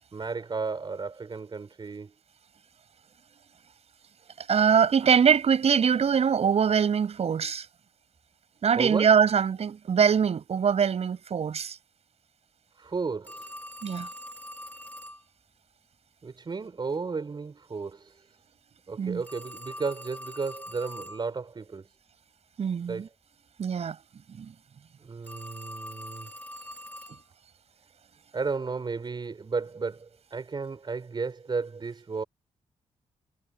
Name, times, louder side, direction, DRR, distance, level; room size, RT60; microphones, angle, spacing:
voice 1, 0.1-2.1 8.8-9.1 12.8-13.5 16.2-18.3 18.9-21.8 22.9-23.1 25.0-26.3 28.3-32.2, right 4 dB, 40° right, 6.8 m, -33 dB
voice 2, 4.4-7.7 8.6-11.8 13.8-14.1 19.0-19.2 22.6-23.1 23.6-24.0 24.4-24.5, right 7 dB, 60° right, 7.1 m, -23 dB
Telephone, 13.3-15.2 19.2-21.2 25.2-27.2, equal, 15° left, 5.5 m, -43 dB
cardioid pair, 100°, 12 cm